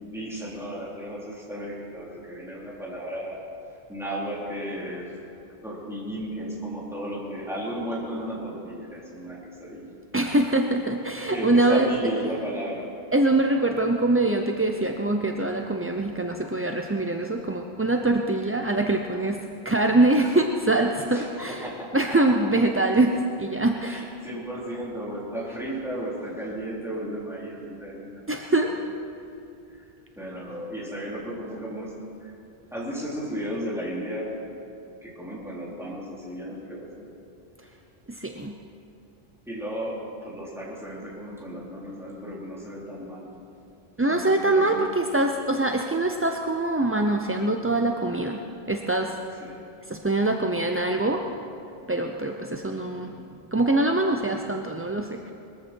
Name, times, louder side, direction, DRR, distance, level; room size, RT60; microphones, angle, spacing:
voice 1, 0.0-3.4 3.9-5.1 5.6-9.9 11.1-12.9 13.6-13.8 21.1-22.3 23.8-28.7 30.2-31.9 32.2-32.3 32.7-34.3 35.0-37.0 39.5-43.3 44.1-44.9 49.4-49.6, equal, ahead, -7 dB, 3.7 m, -34 dB
voice 2, 10.1-11.9 13.1-21.6 21.9-24.1 28.3-28.7 38.1-38.6 44.0-48.4 48.7-49.2 49.9-51.3 51.9-53.1 53.5-55.3, right 2 dB, 20° right, 3 dB, 0.4 m, -24 dB
21.0 x 14.0 x 4.5 m, 2.7 s
omnidirectional pair, 1.1 m